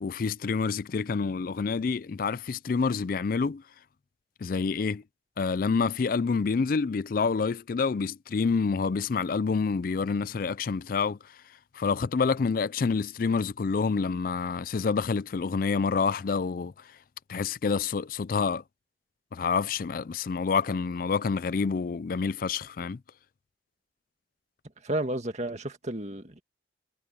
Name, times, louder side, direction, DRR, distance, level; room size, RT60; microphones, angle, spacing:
voice 1, 0.0-3.6 4.4-5.0 5.4-11.4 11.7-16.9 17.3-18.6 19.3-23.0, left 5 dB, 50° left, 0.4 m, -28 dB
voice 2, 24.8-26.4, right 1 dB, 40° right, 2.1 m, -32 dB
head